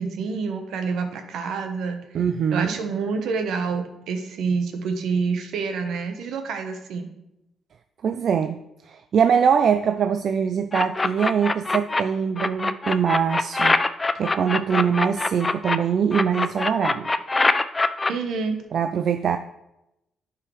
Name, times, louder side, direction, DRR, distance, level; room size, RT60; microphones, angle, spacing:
voice 1, 0.0-2.0 2.5-7.1 18.1-18.6, right 5 dB, 75° right, 6 dB, 0.9 m, -27 dB
voice 2, 2.1-2.7 8.0-8.6 8.9-13.8 14.2-17.1 18.7-19.4, right 7 dB, 60° right, 9 dB, 0.3 m, -22 dB
sound 1, 10.7-12.0 12.4-15.8 16.1-18.1, left 3 dB, 25° left, 0.4 m, -22 dB
10.5 x 4.8 x 3.1 m, 0.88 s
cardioid pair, 90°, 0 cm